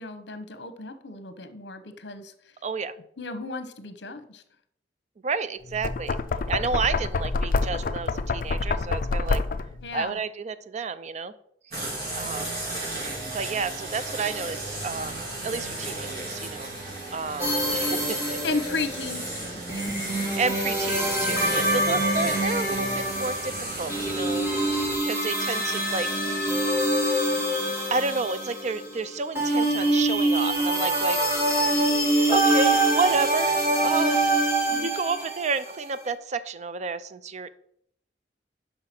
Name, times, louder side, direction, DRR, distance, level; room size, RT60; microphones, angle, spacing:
voice 1, 0.0-2.3 3.2-4.4 9.8-10.2 18.4-19.9 34.7-34.9, left 3 dB, 75° left, 10 dB, 0.9 m, -34 dB
voice 2, 2.6-2.9 5.2-6.2 6.5-9.4 9.9-11.3 12.1-12.6 13.3-16.7 17.1-18.4 20.4-26.2 27.9-31.2 31.5-31.9 32.3-34.3 34.8-37.5, right 4 dB, 40° right, 14 dB, 0.4 m, -30 dB
Knock, 5.7-9.8, left 3 dB, 50° left, 0.4 m, -27 dB
sound 1, 11.7-25.0, right 2 dB, 60° right, 3.6 m, -34 dB
sound 2, 17.4-29.0 29.3-35.6, right 1 dB, 15° right, 1.7 m, -25 dB
5.7 x 5.4 x 5.9 m, 0.69 s
head